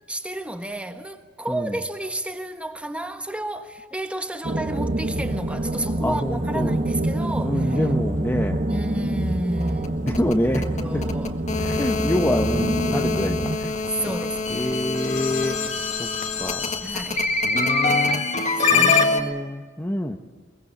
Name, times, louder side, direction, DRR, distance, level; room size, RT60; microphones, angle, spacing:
voice 1, 0.1-7.8 8.6-10.3 10.8-11.4 13.9-14.8 16.8-17.3 18.6-19.4, right 1 dB, 5° right, 1.4 m, -32 dB
sound 1, 4.4-13.6, right 1 dB, 45° right, 1.5 m, -26 dB
voice 2, 6.0-6.8 7.4-8.6 10.0-11.0 11.5-13.7 14.5-15.7 16.0-16.1 16.4-16.8 17.4-18.2 18.7-20.2, left 1 dB, 10° left, 0.9 m, -26 dB
sound 2, 9.6-19.2, left 4 dB, 40° left, 1.7 m, -24 dB
22.5 x 22.5 x 7.3 m
head